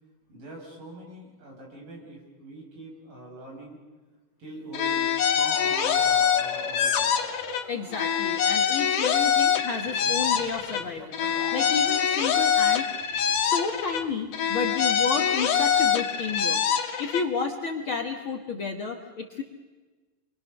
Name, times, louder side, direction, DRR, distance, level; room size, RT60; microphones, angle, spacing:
voice 1, 0.3-3.8 4.4-7.2, right 2 dB, 75° right, -1 dB, 7.6 m, -44 dB
sound 1, 4.7-7.6 7.9-10.8 11.1-14.0 14.3-17.2, left 8 dB, 70° left, 2.9 m, -24 dB
sound 2, 4.9-12.4 12.6-16.5, left 3 dB, 25° left, 2.8 m, -43 dB
voice 2, 7.7-11.2 11.5-12.9 13.2-16.6 17.0-19.4, left 5 dB, 50° left, 2 dB, 1.7 m, -31 dB
28.5 x 23.0 x 6.4 m, 1.3 s
omnidirectional pair, 3.8 m